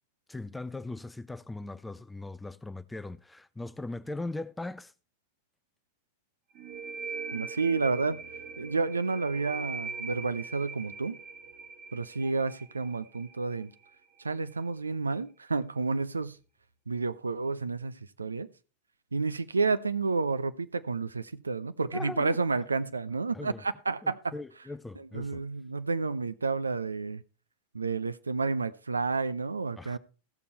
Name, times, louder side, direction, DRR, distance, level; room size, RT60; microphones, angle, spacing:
voice 1, 0.3-4.9 21.9-22.7 23.3-23.6 24.0-25.5 29.8-30.0, left 2 dB, 5° left, 0.5 m, -40 dB
sound 1, 6.6-14.0, right 5 dB, 40° right, 1.8 m, -41 dB
voice 2, 7.3-8.2 8.6-11.2 11.9-13.7 14.2-16.4 16.9-18.5 19.1-24.3 25.1-27.2 27.7-30.0, right 4 dB, 75° right, 0.5 m, -30 dB
15.0 x 6.8 x 4.2 m
figure-of-eight pair, 90°, 0 cm